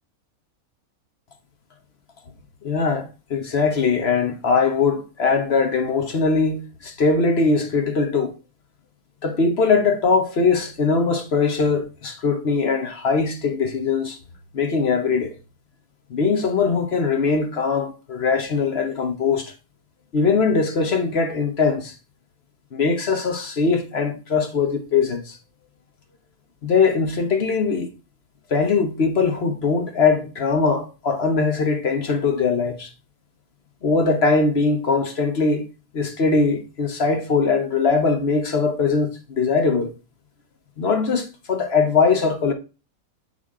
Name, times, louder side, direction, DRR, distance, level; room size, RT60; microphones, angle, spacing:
voice 1, 2.6-8.3 9.2-14.2 14.5-15.3 16.1-19.5 20.1-21.9 22.7-25.4 26.6-27.9 28.5-32.9 33.8-35.6 35.9-39.9 40.8-42.5, left 4 dB, 45° left, 1.1 m, -21 dB
8.0 x 5.6 x 3.7 m
omnidirectional pair, 1.6 m